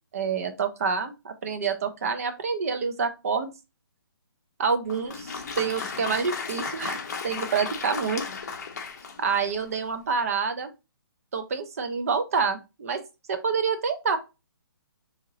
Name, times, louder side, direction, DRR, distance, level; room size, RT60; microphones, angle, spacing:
voice 1, 0.1-3.5 4.6-7.0 7.2-8.2 9.2-10.7 11.3-13.0 13.3-14.2, right 5 dB, 40° right, 8 dB, 0.5 m, -27 dB
Applause, 4.8-9.7, left 5 dB, 45° left, 0.6 m, -35 dB
3.6 x 2.8 x 2.9 m, 0.26 s
hypercardioid pair, 170°, 12 cm